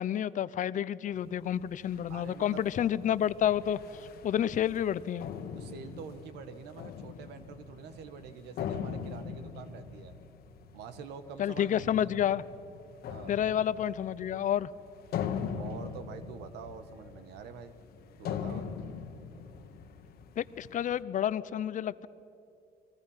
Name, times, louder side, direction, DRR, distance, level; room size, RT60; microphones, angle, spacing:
voice 1, 0.0-3.8 4.2-5.3 11.4-12.4 13.3-14.7 20.4-22.1, left 10 dB, 50° left, 17 dB, 0.7 m, -29 dB
sound 1, 1.1-21.0, left 7 dB, 70° left, 1.6 m, -42 dB
voice 2, 2.1-2.6 5.5-10.1 10.7-12.1 13.1-13.3 15.5-17.8 18.2-18.7, right 6 dB, 85° right, 10 dB, 1.5 m, -46 dB
29.5 x 21.5 x 5.7 m, 2.8 s
cardioid pair, 110°, 17 cm